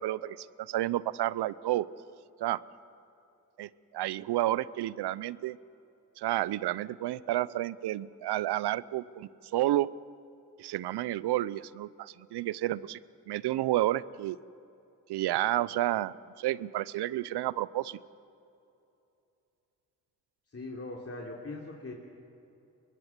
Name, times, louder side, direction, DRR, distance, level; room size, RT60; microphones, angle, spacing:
voice 1, 0.0-1.9 2.4-2.6 3.6-5.6 6.2-9.9 10.6-13.0 13.3-14.4 15.1-18.0, right 14 dB, 80° right, 20 dB, 0.6 m, -31 dB
voice 2, 20.5-21.9, left 2 dB, 35° left, -2 dB, 3.5 m, -40 dB
24.0 x 21.0 x 7.4 m, 2.8 s
supercardioid pair, 45°, 39 cm